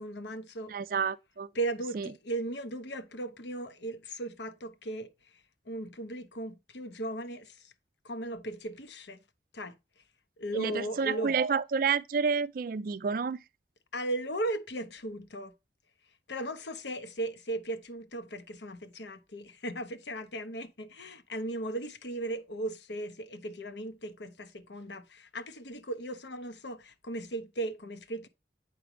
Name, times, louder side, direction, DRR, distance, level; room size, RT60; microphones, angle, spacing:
voice 1, 0.0-0.7 1.5-5.1 5.7-7.7 8.0-9.2 9.5-9.7 10.4-11.3 13.9-15.5 16.3-28.3, right 1 dB, 75° left, 1.0 m, -37 dB
voice 2, 0.7-1.5 1.9-2.1 10.5-13.4, right 5 dB, 50° right, 0.3 m, -29 dB
8.5 x 3.3 x 4.9 m
head